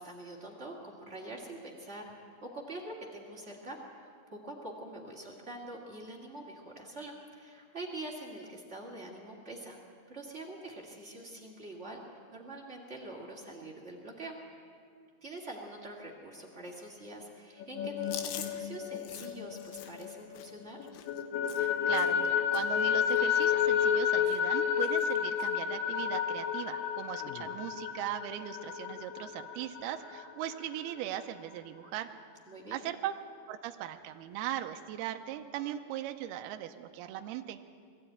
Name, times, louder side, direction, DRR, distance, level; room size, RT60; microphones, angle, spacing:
voice 1, 0.0-9.8 10.1-12.0 12.3-14.3 15.2-20.8 32.5-32.8, right 2 dB, 45° right, 0 dB, 0.8 m, -45 dB
sound 1, 17.6-20.5 20.8-30.2, left 8 dB, 70° left, 3.0 m, -31 dB
Chewing mastication, 18.0-22.3 22.5-22.8 23.1-24.0 24.3-24.6 24.8-25.5 25.9-26.1 27.1-27.5, left 10 dB, 85° left, 3.3 m, -46 dB
voice 2, 21.6-32.1 32.7-33.2 33.5-37.6, right 12 dB, 80° right, 6 dB, 2.3 m, -39 dB
21.5 x 14.0 x 9.1 m, 2.4 s
omnidirectional pair, 5.2 m